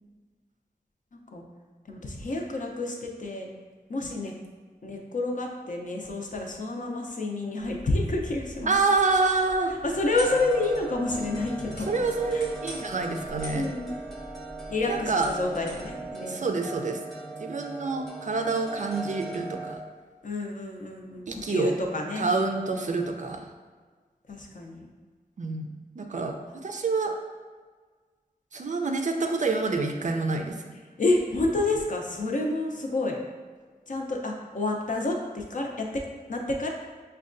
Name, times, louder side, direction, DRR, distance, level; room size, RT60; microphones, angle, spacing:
voice 1, 1.1-1.4 1.9-3.5 3.9-4.3 4.8-8.7 9.8-11.9 12.3-12.4 13.5-14.0 14.7-16.6 20.2-22.3 24.3-24.9 31.0-33.2 33.9-36.0 36.3-36.7, left 2 dB, 55° left, 1 dB, 0.5 m, -29 dB
sound 1, 7.6-16.1, equal, 85° left, 1.2 m, -45 dB
voice 2, 8.7-9.7 11.9-13.7 14.9-15.3 16.3-17.0 17.4-19.8 21.3-21.7 22.2-23.5 25.4-25.7 26.0-26.4 26.6-27.1 28.5-30.7, right 3 dB, 50° right, 4 dB, 0.4 m, -27 dB
sound 2, 10.1-19.8, right 2 dB, ahead, 0.7 m, -39 dB
5.1 x 2.2 x 2.5 m, 1.5 s
wide cardioid pair, 75°, 16 cm